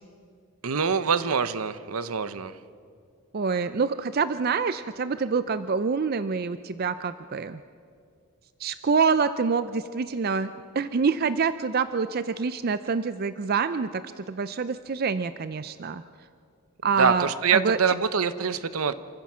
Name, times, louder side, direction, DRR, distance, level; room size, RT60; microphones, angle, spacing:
voice 1, 0.6-2.5 17.0-18.9, right 6 dB, 75° right, 13 dB, 0.8 m, -24 dB
voice 2, 3.3-7.6 8.6-10.5 10.8-16.0 16.8-17.8, right 5 dB, 45° right, 13 dB, 0.4 m, -26 dB
28.0 x 15.0 x 6.1 m, 2.2 s
head